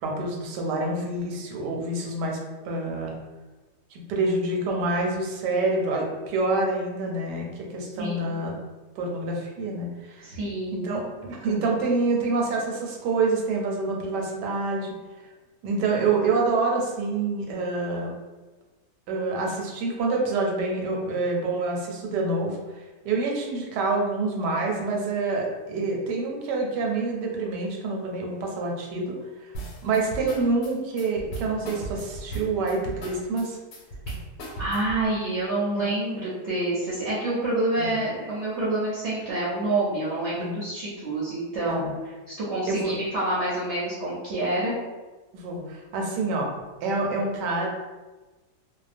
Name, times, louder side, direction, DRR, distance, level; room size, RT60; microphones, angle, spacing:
voice 1, 0.0-2.4 2.6-3.1 3.9-8.6 9.0-10.3 10.7-15.0 15.6-18.1 19.1-22.6 23.0-29.5 29.8-33.6 35.7-35.9 37.8-37.9 40.3-40.6 41.7-41.9 42.7-42.9 45.3-46.5 46.8-47.7, right 3 dB, 85° right, 0 dB, 1.2 m, -27 dB
voice 2, 8.0-8.4 10.2-11.0 34.6-41.9 42.3-44.8, right 2 dB, 60° right, -8 dB, 0.7 m, -27 dB
sound 1, 29.5-35.1, right 2 dB, 85° left, 1.2 m, -36 dB
2.7 x 2.1 x 2.4 m, 1.2 s
omnidirectional pair, 1.8 m